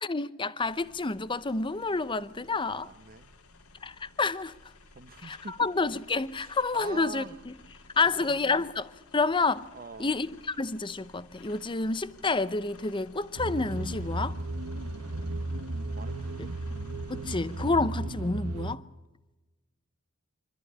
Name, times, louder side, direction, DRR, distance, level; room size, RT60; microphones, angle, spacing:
voice 1, 0.0-2.9 3.8-4.6 5.2-7.5 8.0-9.7 10.0-14.4 17.1-18.8, left 3 dB, 20° left, 0.7 m, -29 dB
sound 1, 0.6-17.7, left 3 dB, 80° left, 1.8 m, -54 dB
voice 2, 2.7-3.3 4.9-5.7 6.4-7.4 8.0-8.6 9.7-10.1 15.9-16.4, right 4 dB, 40° right, 0.9 m, -44 dB
sound 2, 13.4-18.8, right 2 dB, 85° right, 1.0 m, -34 dB
25.0 x 13.5 x 9.9 m
head